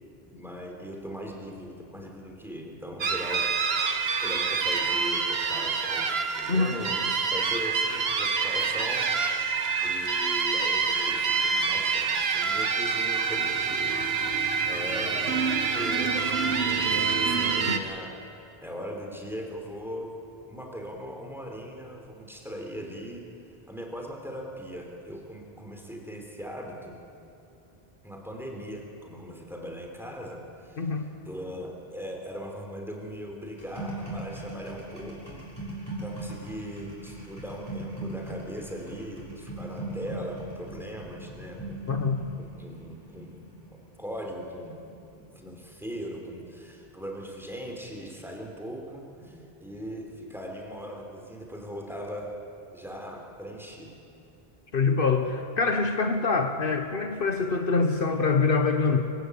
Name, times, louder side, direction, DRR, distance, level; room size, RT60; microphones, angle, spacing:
voice 1, 0.3-3.5 4.2-9.1 9.8-14.0 14.7-15.4 15.7-20.1 20.5-23.3 23.7-27.0 28.0-35.4 36.0-41.9 42.4-44.8 45.2-52.3 52.7-54.0, equal, ahead, 0 dB, 3.6 m, -39 dB
sound 1, 3.0-17.8, right 5 dB, 75° right, 1.4 m, -27 dB
voice 2, 6.5-6.8 30.8-31.1 41.9-42.3 54.7-59.0, left 4 dB, 60° left, 6 dB, 1.3 m, -25 dB
sound 2, 33.6-45.4 45.7-46.1, right 2 dB, 20° left, 6.2 m, -39 dB
24.5 x 16.0 x 8.2 m, 2.9 s
omnidirectional pair, 1.0 m